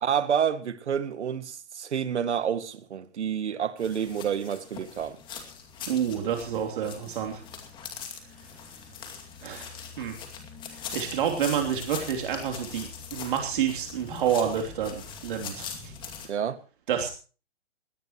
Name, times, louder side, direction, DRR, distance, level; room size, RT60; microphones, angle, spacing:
voice 1, 0.0-5.2 16.3-16.6, right 8 dB, 70° right, 2.0 m, -29 dB
sound 1, 3.8-16.3, left 6 dB, 15° left, 2.4 m, -41 dB
voice 2, 5.9-7.4 9.4-10.2 10.9-14.9 15.2-15.9 16.9-17.1, right 8 dB, 45° right, 3.3 m, -28 dB
21.0 x 18.0 x 3.0 m
hypercardioid pair, 165°, 35 cm